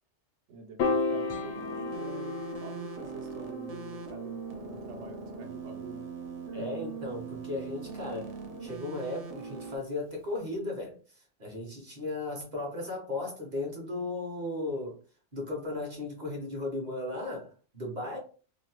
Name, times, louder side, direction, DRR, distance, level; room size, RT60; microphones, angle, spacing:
voice 1, 0.5-6.1 6.5-6.9, right 4 dB, 75° right, 1.0 m, -47 dB
Piano, 0.8-7.2, left 3 dB, 90° left, 0.9 m, -35 dB
sound 1, 1.3-4.3, left 1 dB, 60° left, 0.6 m, -51 dB
sound 2, 1.5-9.8, right 5 dB, 60° right, 0.4 m, -41 dB
voice 2, 6.5-15.0 15.3-18.2, left 2 dB, 40° right, 0.8 m, -36 dB
2.6 x 2.0 x 2.8 m
omnidirectional pair, 1.2 m